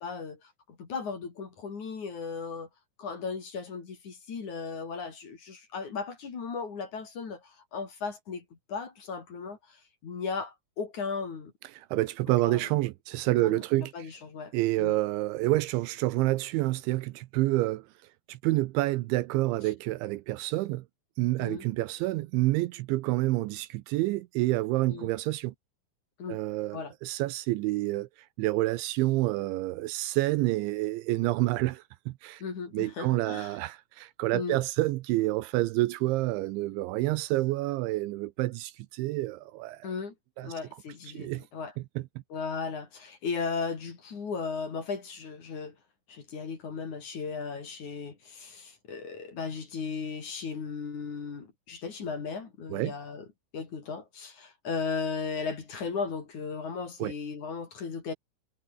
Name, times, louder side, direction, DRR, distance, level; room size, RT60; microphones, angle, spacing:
voice 1, 0.0-2.7 3.0-8.4 8.7-11.5 12.5-12.7 13.4-15.0 21.4-21.7 24.9-25.1 26.2-26.4 26.7-26.9 32.4-33.6 34.3-34.6 39.8-40.1 40.4-41.7 42.3-45.8 46.1-53.2 53.5-58.1, left 5 dB, 40° left, 4.5 m, -36 dB
voice 2, 11.7-13.9 14.5-17.9 18.3-20.8 21.2-25.5 26.3-28.1 28.4-32.4 32.7-39.9 40.4-40.5 41.1-41.4 42.0-42.1 52.7-52.9 57.0-57.1, right 18 dB, 80° right, 3.0 m, -28 dB
omnidirectional pair, 5.6 m